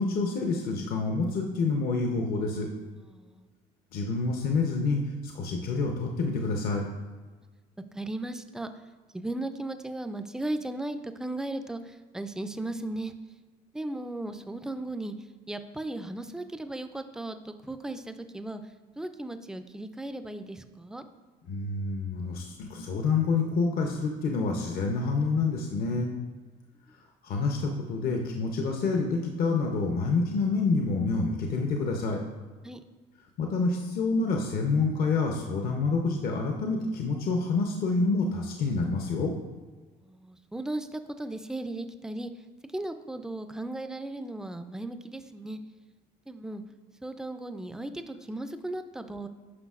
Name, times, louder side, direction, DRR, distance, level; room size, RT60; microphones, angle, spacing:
voice 1, 0.0-2.7 3.9-6.8 21.5-26.1 27.2-32.2 33.4-39.3, left 4 dB, 65° left, 2 dB, 0.7 m, -27 dB
voice 2, 3.0-3.5 7.9-8.7 9.1-13.1 13.7-15.1 15.5-18.6 19.0-21.0 32.6-32.8 40.0-42.3 42.7-45.6 46.3-46.6 47.0-49.3, right 2 dB, 5° right, 9 dB, 0.3 m, -36 dB
9.7 x 5.7 x 2.4 m, 1.4 s
cardioid pair, 110°, 17 cm